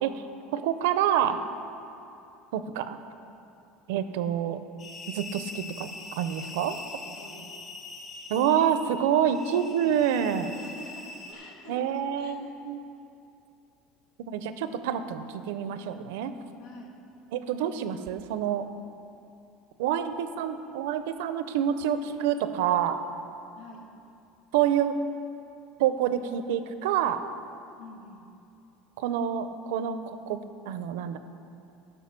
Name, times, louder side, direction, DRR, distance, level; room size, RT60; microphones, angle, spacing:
voice 1, 0.5-1.4 2.5-3.0 3.9-4.6 5.1-6.8 8.3-10.5 11.7-12.8 14.3-16.3 17.3-18.7 19.8-23.0 24.5-25.0 25.8-27.2 29.0-30.4 30.7-31.2, right 9 dB, 85° right, 11 dB, 0.6 m, -27 dB
sound 1, 4.8-11.3, left 3 dB, 35° left, 1.8 m, -43 dB
voice 2, 7.1-7.6 10.6-11.8 12.2-12.4 16.6-17.0 23.6-23.9 27.8-28.3, left 2 dB, 80° left, -1 dB, 2.1 m, -47 dB
11.5 x 5.6 x 7.4 m, 2.7 s
supercardioid pair, 130°, 0 cm